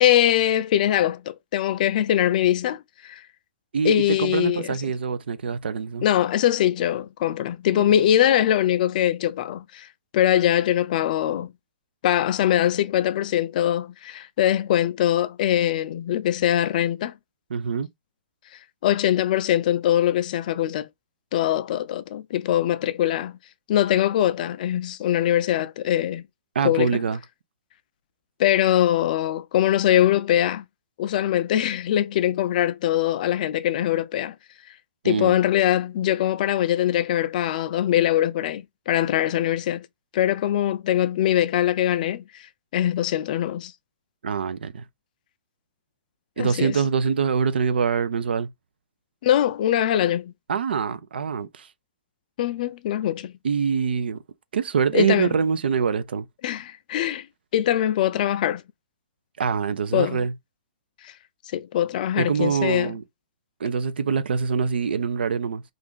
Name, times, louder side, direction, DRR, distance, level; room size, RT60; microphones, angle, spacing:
voice 1, 0.0-3.2 3.8-4.8 6.0-9.9 10.1-11.5 12.0-17.1 18.8-20.9 21.3-23.4 23.7-26.2 26.6-27.0 28.4-30.6 31.0-34.3 35.0-39.9 40.1-42.5 42.7-43.7 46.4-46.8 49.2-50.3 52.4-53.3 54.9-55.3 56.4-57.3 57.5-58.6 59.9-60.2 61.0-61.1 61.5-63.0, left 11 dB, 50° left, 0.4 m, -22 dB
voice 2, 3.7-6.1 7.9-8.0 17.5-17.9 26.5-27.2 35.0-35.4 44.2-44.9 46.4-48.5 50.5-51.7 53.4-54.2 54.5-56.3 59.4-60.3 62.2-63.0 63.6-65.6, right 6 dB, 80° right, 0.4 m, -24 dB
2.5 x 2.4 x 3.6 m
hypercardioid pair, 135°, 6 cm